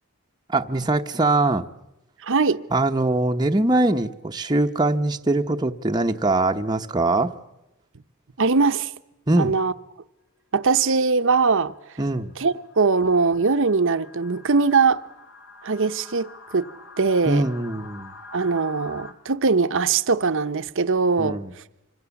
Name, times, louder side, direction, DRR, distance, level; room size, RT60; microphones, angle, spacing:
voice 1, 0.5-1.7 2.7-7.3 9.3-9.6 12.0-12.3 17.2-18.1 21.2-21.5, right 2 dB, 20° right, 0.9 m, -22 dB
voice 2, 2.2-2.6 8.4-8.9 9.4-9.7 10.5-11.7 12.4-15.0 15.6-16.7 17.0-17.4 18.3-21.4, right 4 dB, 60° right, 0.9 m, -21 dB
sound 1, 10.5-10.7 11.3-19.1, left 3 dB, 60° left, 3.1 m, -46 dB
26.0 x 25.5 x 7.1 m
head